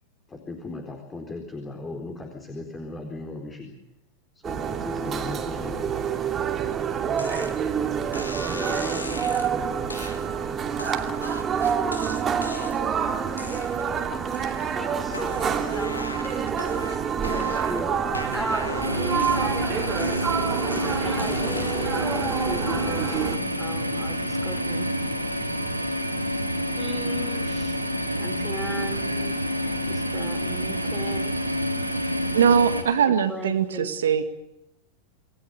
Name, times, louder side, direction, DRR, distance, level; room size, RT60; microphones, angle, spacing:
voice 1, 0.3-3.7 4.3-6.3 6.9-7.4 8.2-10.1, left 2 dB, 15° left, 4.2 m, -38 dB
sound 1, 4.4-23.4, right 7 dB, 25° right, 2.8 m, -27 dB
sound 2, 7.2-7.5 8.1-9.5 9.9-10.2 10.8-12.9 13.3-14.0 14.3-14.8 15.1-17.8 18.1-19.6 20.0-22.0, left 2 dB, 80° left, 3.0 m, -38 dB
voice 2, 14.8-18.0 18.3-20.5 21.0-23.2 23.6-24.9 26.8-27.8 28.2-29.4 29.9-31.4 33.1-34.2, equal, ahead, 5.0 m, -37 dB
sound 3, 18.8-32.8, equal, 90° right, 3.4 m, -28 dB
voice 3, 32.3-34.2, right 7 dB, 65° right, 2.1 m, -21 dB
29.0 x 20.5 x 6.9 m
figure-of-eight pair, 90°, 0 cm